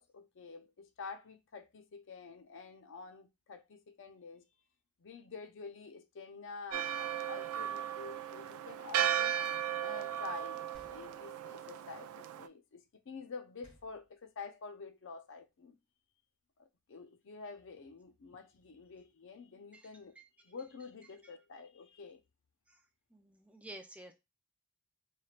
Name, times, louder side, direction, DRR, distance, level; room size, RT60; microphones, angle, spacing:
voice 1, 0.0-4.4 5.0-9.4 9.8-15.8 16.6-20.2 20.4-22.2, left 4 dB, 60° left, 0.5 m, -48 dB
Church bell, 6.7-12.5, right 10 dB, 80° right, 0.3 m, -36 dB
sound 1, 10.7-11.7 13.6-14.5, right 1 dB, 30° left, 2.6 m, -63 dB
voice 2, 23.1-24.1, right 1 dB, 5° right, 0.4 m, -51 dB
4.3 x 3.2 x 2.4 m
head